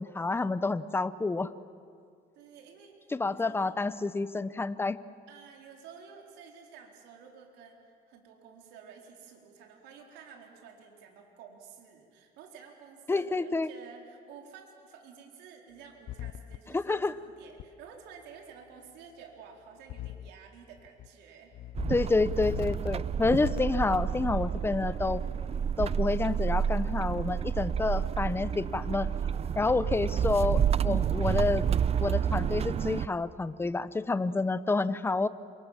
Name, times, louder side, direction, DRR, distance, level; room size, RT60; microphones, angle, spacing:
voice 1, 0.0-1.5 3.1-5.0 13.1-13.7 16.7-17.1 21.9-25.2 25.8-29.1 29.6-31.7 32.0-35.3, left 3 dB, 15° left, 14 dB, 0.8 m, -29 dB
voice 2, 2.4-3.8 5.3-21.5, right 6 dB, 90° right, 2 dB, 4.0 m, -51 dB
sound 1, 16.1-16.6 17.6-17.7 19.9-20.3 20.8-21.1 21.5-21.9 22.3-22.9 23.4-23.9, left 13 dB, 60° left, 0.7 m, -39 dB
sound 2, 21.7-33.1, right 8 dB, 35° right, 0.6 m, -29 dB
28.0 x 25.5 x 7.4 m, 2.3 s
cardioid pair, 110°, 17 cm